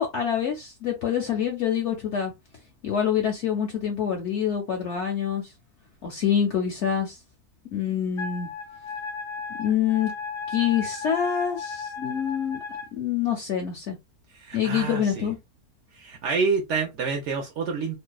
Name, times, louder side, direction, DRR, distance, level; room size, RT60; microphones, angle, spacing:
voice 1, 0.0-2.3 2.8-5.4 6.0-7.2 7.7-8.5 9.6-10.1 10.5-12.6 12.9-14.0 14.5-15.4, left 8 dB, 65° left, 0.7 m, -26 dB
Wind instrument woodwind instrument, 8.2-12.9, left 5 dB, 50° left, 0.3 m, -35 dB
voice 2, 14.4-15.3 16.0-17.9, right 5 dB, 65° right, 0.8 m, -27 dB
2.6 x 2.1 x 2.3 m
omnidirectional pair, 1.6 m